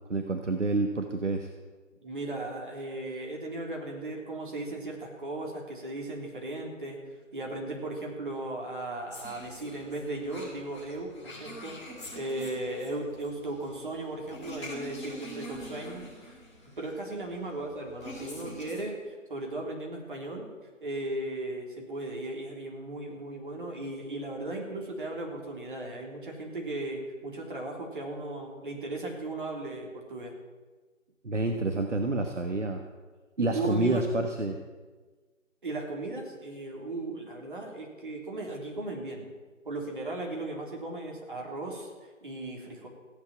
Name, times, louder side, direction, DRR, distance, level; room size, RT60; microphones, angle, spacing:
voice 1, 0.1-1.5 31.2-32.8 33.4-34.5, right 2 dB, 65° right, 5 dB, 1.5 m, -28 dB
voice 2, 2.0-7.0 7.3-11.9 12.1-16.4 16.8-20.5 20.8-30.3 33.4-34.0 35.6-39.3 39.7-42.9, right 2 dB, 40° right, -1 dB, 3.6 m, -36 dB
sound 1, 9.1-18.8, equal, 20° left, 4.2 m, -45 dB
16.0 x 8.7 x 8.9 m, 1.3 s
figure-of-eight pair, 170°, 39 cm